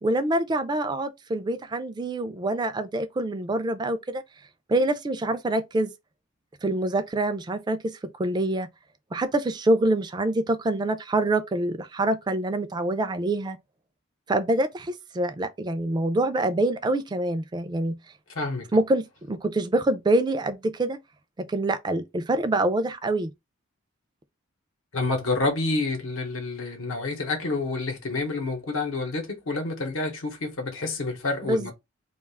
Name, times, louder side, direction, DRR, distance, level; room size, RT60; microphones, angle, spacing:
voice 1, 0.0-4.2 4.7-5.9 6.6-8.7 9.1-13.6 14.3-18.0 18.7-21.0 21.4-23.3 31.4-31.7, right 1 dB, 20° right, 0.3 m, -25 dB
voice 2, 18.3-18.7 24.9-31.7, left 3 dB, 85° left, 0.9 m, -28 dB
2.3 x 2.3 x 3.3 m
head